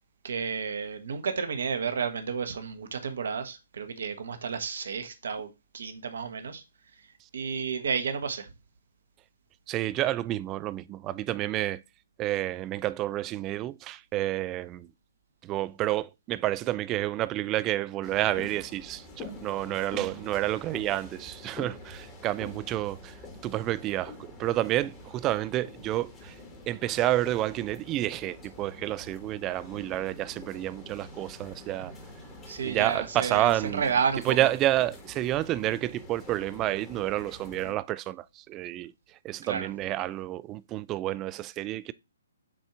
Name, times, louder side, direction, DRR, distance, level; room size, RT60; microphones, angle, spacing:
voice 1, 0.2-6.6 7.3-8.5 32.5-34.5 39.4-39.7, right 6 dB, 60° right, 1.0 m, -31 dB
voice 2, 9.7-11.8 12.2-14.9 15.4-23.2 23.4-26.4 26.7-31.9 32.6-33.9 34.2-38.9 39.2-41.9, right 15 dB, 20° right, 0.3 m, -29 dB
sound 1, 18.0-37.7, left 2 dB, 20° left, 1.4 m, -46 dB
7.5 x 2.7 x 4.7 m
figure-of-eight pair, 130°, 0 cm